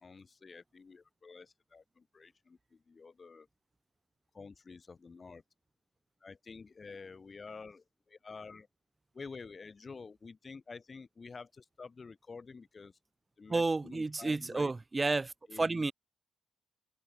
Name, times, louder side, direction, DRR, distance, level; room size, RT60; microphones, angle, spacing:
voice 1, 0.0-3.5 4.3-5.4 6.2-8.7 9.1-12.9 13.4-14.7 15.5-15.8, left 4 dB, 35° left, 2.2 m, -49 dB
voice 2, 13.5-15.9, right 3 dB, 20° right, 1.3 m, -31 dB
open air
cardioid pair, 90°, 0 cm